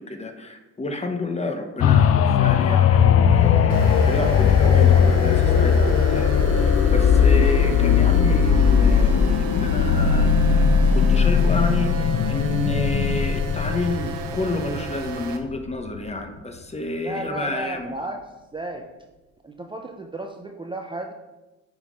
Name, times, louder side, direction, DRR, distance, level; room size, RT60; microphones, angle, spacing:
voice 1, 0.0-10.6 10.9-17.9, left 2 dB, 20° left, 5 dB, 0.9 m, -30 dB
sound 1, 1.8-15.5 16.0-16.1, left 7 dB, 50° left, 0.5 m, -18 dB
sound 2, 3.7-15.4, right 5 dB, 80° right, 0.9 m, -35 dB
voice 2, 17.0-18.2 18.5-18.9 19.4-21.1, right 1 dB, 15° right, 3 dB, 0.5 m, -33 dB
7.2 x 3.6 x 5.0 m, 1.1 s
cardioid pair, 90°, 30 cm